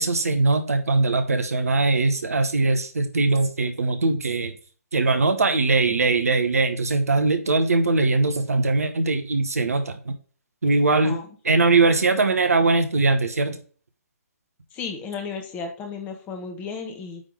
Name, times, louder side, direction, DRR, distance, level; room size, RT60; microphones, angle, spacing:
voice 1, 0.0-4.5 4.9-10.1 10.6-11.2 11.4-13.6, right 3 dB, 70° right, 7 dB, 1.1 m, -21 dB
voice 2, 14.7-17.2, left 5 dB, 20° left, 5 dB, 1.3 m, -34 dB
9.0 x 3.6 x 3.4 m, 0.40 s
figure-of-eight pair, 130°, 8 cm